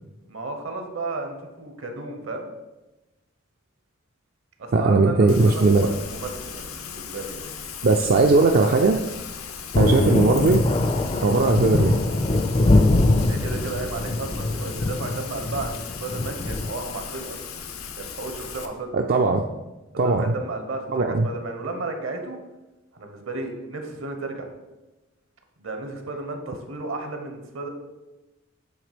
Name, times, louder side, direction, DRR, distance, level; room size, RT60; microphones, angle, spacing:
voice 1, 0.3-2.5 4.6-7.4 13.3-17.4 17.9-18.9 19.9-22.4 22.9-24.5 25.6-27.7, right 3 dB, 65° right, 5 dB, 1.0 m, -33 dB
voice 2, 4.7-5.9 7.8-9.0 9.8-10.6 11.2-12.0 18.9-19.4 20.0-20.3 20.9-21.3, right 3 dB, 45° right, 3 dB, 0.4 m, -18 dB
Rain, 5.3-18.7, left 6 dB, 85° left, 0.7 m, -37 dB
Thunder, 9.7-16.7, left 2 dB, 25° left, 0.4 m, -22 dB
8.0 x 3.2 x 5.1 m, 1.1 s
head